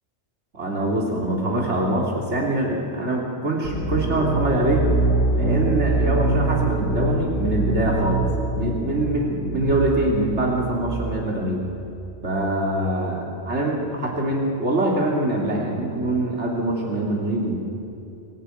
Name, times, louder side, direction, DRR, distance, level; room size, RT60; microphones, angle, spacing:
voice 1, 0.5-4.9 5.3-11.6 12.2-17.6, right 1 dB, 75° right, -2 dB, 3.5 m, -24 dB
sound 1, 3.6-11.3, right 2 dB, 50° left, 3.7 m, -24 dB
25.5 x 15.5 x 9.3 m, 2.9 s
omnidirectional pair, 1.2 m